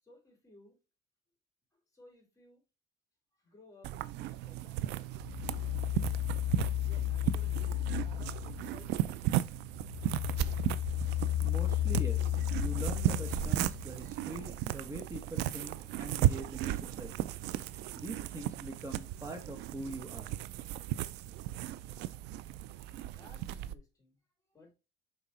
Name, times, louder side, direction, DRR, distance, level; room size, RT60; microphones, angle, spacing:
voice 1, 0.0-0.8 1.7-2.6 3.4-6.0 6.8-7.7 8.1-9.1 9.4-9.5 23.1-24.2 24.5-24.7, left 2 dB, 20° left, 3.3 m, -59 dB
sound 1, 3.8-23.8, right 14 dB, 90° right, 0.4 m, -35 dB
sound 2, 5.2-9.1 9.5-14.0, left 14 dB, 65° left, 0.6 m, -33 dB
voice 2, 11.4-17.3 17.9-20.3, right 2 dB, 20° right, 1.1 m, -43 dB
6.0 x 3.9 x 4.2 m
cardioid pair, 110°, 17 cm